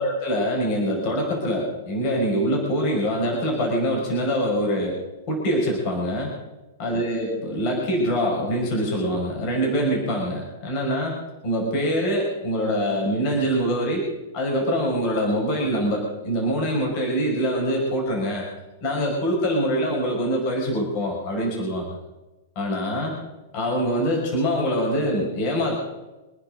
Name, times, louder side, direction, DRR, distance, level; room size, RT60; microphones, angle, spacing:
voice 1, 0.0-5.0 5.3-6.3 6.8-11.2 11.4-14.1 14.3-18.5 18.8-21.9 22.6-23.2 23.5-25.8, equal, 35° left, -1 dB, 5.6 m, -24 dB
26.0 x 10.5 x 5.1 m, 1.1 s
supercardioid pair, 165°, 0 cm